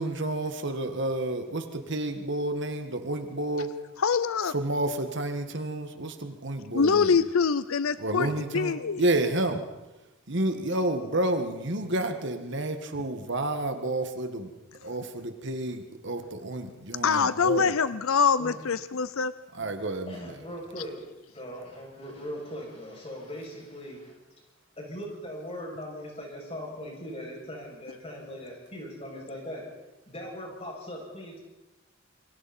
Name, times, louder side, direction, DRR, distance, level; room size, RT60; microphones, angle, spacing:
voice 1, 0.0-3.7 4.5-7.1 8.0-9.6 10.3-14.5 14.8-17.7 19.6-20.2, right 1 dB, 55° right, 7 dB, 1.8 m, -30 dB
voice 2, 4.0-4.5 6.7-9.1 17.0-19.3, left 5 dB, 75° left, 15 dB, 0.6 m, -24 dB
voice 3, 20.1-21.0 21.3-24.2 24.8-29.7 30.1-31.4, equal, 30° left, -2 dB, 7.3 m, -39 dB
28.0 x 23.5 x 4.4 m, 1.0 s
head